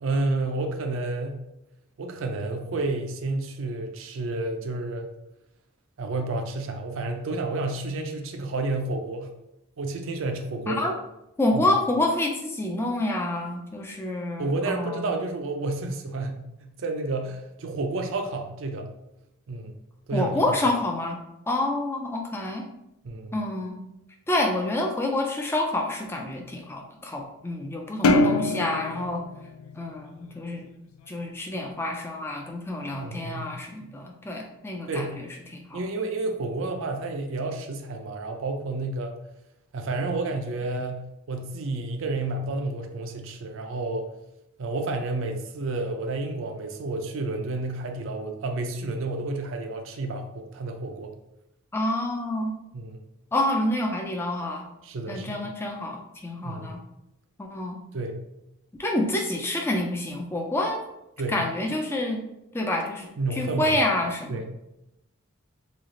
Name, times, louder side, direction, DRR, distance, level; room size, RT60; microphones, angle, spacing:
voice 1, 0.0-1.4 2.0-5.1 6.0-9.3 9.8-10.9 11.5-11.6 14.4-18.9 19.5-19.7 20.1-20.3 23.0-23.4 28.2-28.3 33.0-33.6 34.9-35.2 35.7-39.1 39.7-44.1 44.6-51.1 52.7-53.0 54.8-55.4 56.4-56.8 57.9-58.2 61.2-61.4 63.2-63.8 64.3-64.5, right 2 dB, 65° right, 4 dB, 0.4 m, -30 dB
voice 2, 11.4-15.1 20.1-21.2 21.5-22.7 23.3-23.8 24.3-29.2 29.7-30.7 31.1-35.1 35.5-35.8 51.7-52.5 53.3-54.6 55.1-56.8 57.4-57.8 58.8-60.8 61.3-62.2 62.5-64.5, left 1 dB, 10° left, 1 dB, 0.4 m, -28 dB
sound 1, 28.0-30.6, left 2 dB, 85° left, 0.4 m, -24 dB
3.1 x 2.4 x 3.8 m, 0.88 s
head